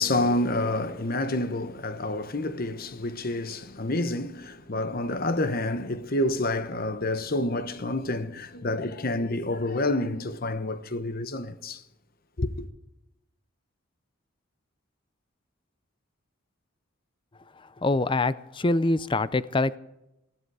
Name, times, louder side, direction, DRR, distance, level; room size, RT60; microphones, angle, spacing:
voice 1, 0.0-11.8 12.4-12.5, left 2 dB, 45° left, 1.0 m, -28 dB
voice 2, 17.8-19.8, left 2 dB, 25° left, 0.5 m, -24 dB
20.0 x 14.0 x 4.8 m
head